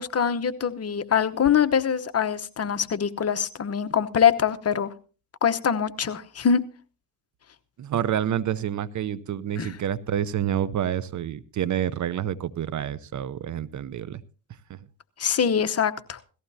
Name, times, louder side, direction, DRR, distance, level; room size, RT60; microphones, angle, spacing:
voice 1, 0.0-4.9 5.4-6.6 9.6-9.7 15.2-16.2, left 7 dB, 35° left, 11 dB, 1.0 m, -23 dB
voice 2, 7.8-14.2 14.7-14.8, right 10 dB, 45° right, 19 dB, 0.7 m, -28 dB
18.0 x 14.5 x 2.8 m, 0.35 s
cardioid pair, 85°, 41 cm